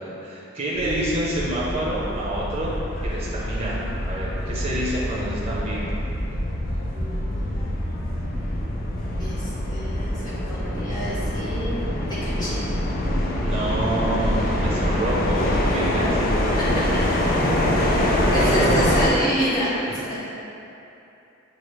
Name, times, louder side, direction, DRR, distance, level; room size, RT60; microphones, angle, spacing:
voice 1, 0.0-2.7 3.0-6.0 13.4-16.2 17.5-18.8 19.9-20.0, right 1 dB, 30° right, -7 dB, 0.7 m, -28 dB
sound 1, 0.8-19.1, left 1 dB, 45° left, 0.5 m, -25 dB
voice 2, 6.9-7.5 9.2-11.8 12.1-12.7 16.6-16.8 18.3-19.7 20.0-20.2, equal, 20° left, -11 dB, 1.2 m, -28 dB
6.3 x 2.5 x 3.1 m, 2.8 s
head